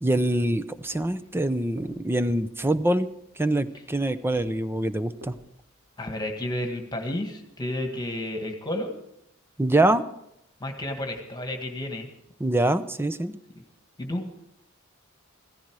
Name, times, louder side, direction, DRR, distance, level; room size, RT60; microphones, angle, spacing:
voice 1, 0.0-3.1 3.4-5.3 9.6-10.0 12.4-13.4, right 1 dB, 10° right, 13 dB, 0.6 m, -24 dB
sound 1, 0.9-5.8, equal, 90° right, 2.7 m, -52 dB
voice 2, 6.0-8.9 10.6-12.1 14.0-14.4, left 1 dB, 20° left, 4 dB, 1.8 m, -31 dB
16.5 x 14.5 x 4.8 m, 0.78 s
head